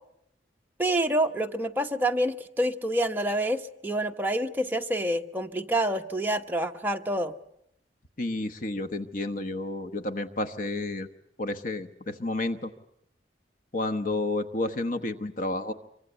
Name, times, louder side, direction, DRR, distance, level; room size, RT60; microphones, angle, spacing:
voice 1, 0.8-7.3, right 1 dB, 10° right, 3 dB, 1.1 m, -27 dB
voice 2, 8.2-11.1 11.4-12.7 13.7-15.7, left 2 dB, 50° left, 9 dB, 1.1 m, -31 dB
25.5 x 24.0 x 8.0 m, 0.78 s
head